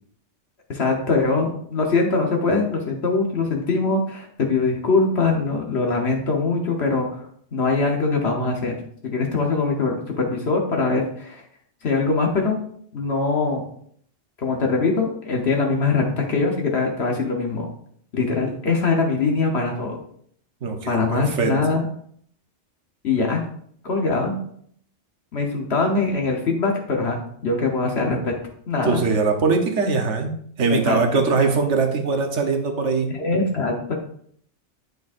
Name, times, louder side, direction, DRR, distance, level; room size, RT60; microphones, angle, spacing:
voice 1, 0.7-7.2 7.5-8.7 9.0-11.4 11.8-12.6 12.9-13.6 14.4-17.7 18.1-20.0 20.9-21.9 23.0-23.4 23.8-24.4 25.3-28.3 28.7-29.0 30.7-31.2 33.1-33.9, left 3 dB, 65° left, 1 dB, 1.3 m, -22 dB
voice 2, 20.6-21.5 28.8-33.1, right 4 dB, 85° right, 4 dB, 1.3 m, -22 dB
8.4 x 6.7 x 2.6 m, 0.62 s
omnidirectional pair, 1.2 m